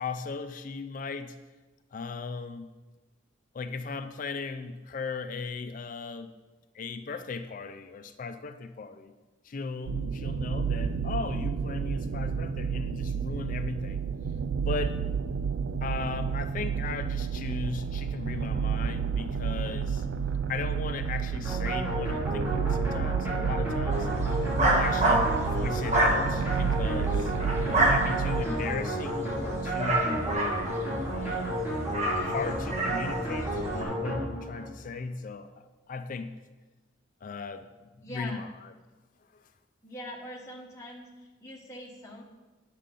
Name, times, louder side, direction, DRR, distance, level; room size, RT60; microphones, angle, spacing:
voice 1, 0.0-1.4 1.9-2.7 3.5-6.3 6.7-9.1 9.4-14.0 14.6-15.0 15.8-20.1 20.5-24.1 24.6-27.3 27.8-30.2 31.0-31.7 32.1-36.3 37.2-38.7 39.3-39.4, left 4 dB, 45° left, 9 dB, 0.4 m, -37 dB
sound 1, 9.9-28.4, right 6 dB, 80° right, 0.4 m, -31 dB
sound 2, 21.4-34.8, right 1 dB, 10° right, 3.0 m, -32 dB
sound 3, 23.9-33.8, right 1 dB, 35° right, 1.3 m, -29 dB
voice 2, 27.6-27.9 38.0-38.4 39.8-42.2, left 1 dB, 15° left, -4 dB, 1.0 m, -43 dB
9.8 x 6.5 x 3.8 m, 1.2 s
head